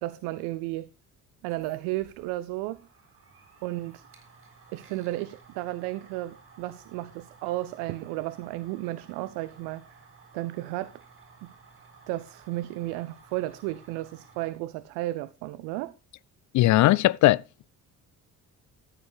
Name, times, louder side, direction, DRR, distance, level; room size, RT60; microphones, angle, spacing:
voice 1, 0.0-0.9 1.4-2.9 3.6-4.0 4.7-9.8 10.3-11.0 12.1-15.9, right 17 dB, 60° right, 0.7 m, -33 dB
sound 1, 1.4-14.5, right 5 dB, 30° right, 4.3 m, -55 dB
voice 2, 16.5-17.4, left 16 dB, 45° left, 0.5 m, -19 dB
14.0 x 9.0 x 3.3 m
figure-of-eight pair, 45°, 44 cm